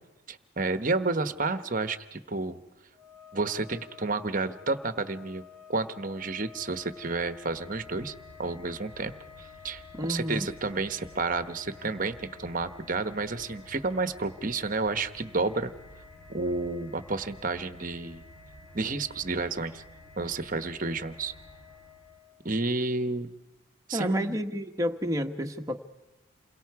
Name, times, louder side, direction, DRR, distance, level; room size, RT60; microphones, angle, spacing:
voice 1, 0.3-2.6 3.3-5.4 5.7-8.1 8.4-9.1 9.4-15.7 16.3-18.2 18.7-19.8 20.2-21.3 22.4-23.3 23.9-24.4, right 3 dB, 40° right, 11 dB, 1.1 m, -31 dB
sound 1, 2.9-22.6, left 8 dB, 10° left, 3.7 m, -53 dB
sound 2, 6.1-22.3, left 1 dB, 85° left, 4.4 m, -53 dB
voice 2, 10.0-10.5 23.9-25.8, equal, 15° right, 3 dB, 1.2 m, -30 dB
28.5 x 22.5 x 4.7 m, 1.0 s
head